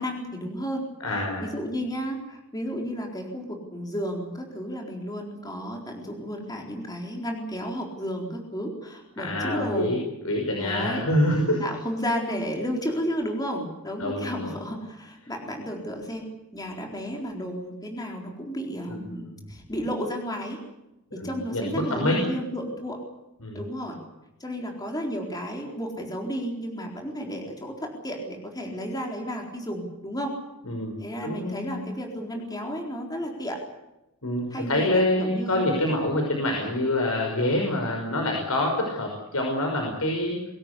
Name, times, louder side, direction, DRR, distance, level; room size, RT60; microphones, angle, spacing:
voice 1, 0.0-0.8 1.4-10.0 10.6-11.0 11.6-16.2 16.5-20.6 21.1-23.0 23.5-24.0 24.4-30.4 31.0-33.6 34.5-35.7, equal, 15° left, 1 dB, 4.1 m, -32 dB
voice 2, 1.0-1.5 9.2-10.0 10.2-11.6 14.0-14.6 18.9-19.0 21.2-22.2 23.4-23.6 30.6-30.9 31.2-31.9 34.2-40.4, left 1 dB, 85° left, 1 dB, 5.6 m, -26 dB
24.5 x 17.5 x 8.4 m, 0.94 s
head